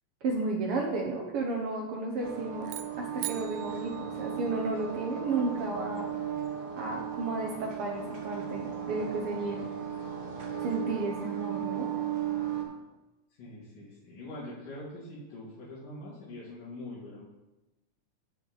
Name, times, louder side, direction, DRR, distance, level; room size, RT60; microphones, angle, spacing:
voice 1, 0.2-2.7 3.0-3.9 4.2-6.1 6.8-9.7 10.6-11.9, right 3 dB, 65° right, 1 dB, 1.4 m, -33 dB
sound 1, 2.2-12.6, right 9 dB, 50° right, 1.3 m, -36 dB
sound 2, 2.6-5.0, right 15 dB, 80° right, 1.9 m, -42 dB
voice 2, 13.4-17.2, left 1 dB, 80° left, -9 dB, 3.7 m, -43 dB
14.5 x 5.4 x 4.0 m, 1.0 s
omnidirectional pair, 3.6 m